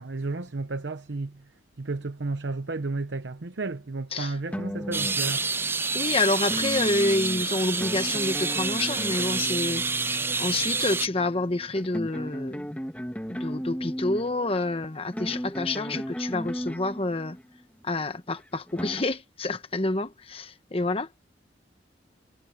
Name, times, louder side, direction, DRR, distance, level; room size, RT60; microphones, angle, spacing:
voice 1, 0.0-1.5 1.8-5.6, right 3 dB, 75° right, 0.8 m, -32 dB
sound 1, 4.5-5.8 6.5-17.6 18.4-19.0, equal, 10° left, 1.5 m, -36 dB
sound 2, 4.9-11.1, right 4 dB, 10° right, 0.4 m, -28 dB
voice 2, 5.9-12.7 13.3-17.4 17.8-21.3, left 2 dB, 30° left, 1.2 m, -28 dB
head